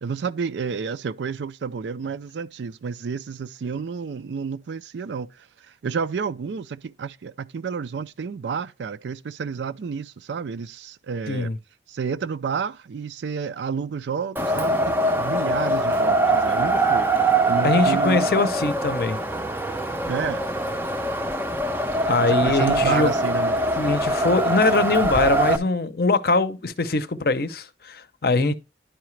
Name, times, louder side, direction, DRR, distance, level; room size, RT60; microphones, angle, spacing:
voice 1, 0.0-5.3 5.8-11.5 11.9-17.1 17.5-18.3 20.1-20.4 22.4-23.8 28.4-28.5, right 5 dB, 80° right, 0.4 m, -30 dB
Wind, 14.4-25.6, right 2 dB, 10° right, 0.5 m, -23 dB
voice 2, 17.6-19.2 22.1-23.1 23.8-28.5, left 3 dB, 55° left, 0.6 m, -22 dB
10.0 x 4.8 x 3.2 m
head